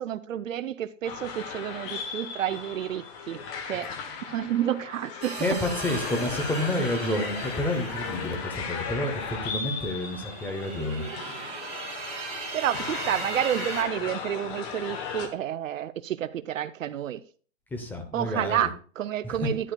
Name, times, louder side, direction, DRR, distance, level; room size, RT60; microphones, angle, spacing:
voice 1, 0.0-3.9 4.2-5.4 12.5-17.2 18.1-19.7, right 11 dB, 85° right, 0.7 m, -30 dB
sound 1, 1.0-15.3, left 6 dB, 25° left, 1.0 m, -36 dB
sound 2, 5.2-13.8, right 5 dB, 15° right, 2.5 m, -39 dB
voice 2, 5.4-11.1 17.7-18.7 19.2-19.5, left 1 dB, 5° left, 0.7 m, -29 dB
10.5 x 9.9 x 2.3 m
hypercardioid pair, 150°, 38 cm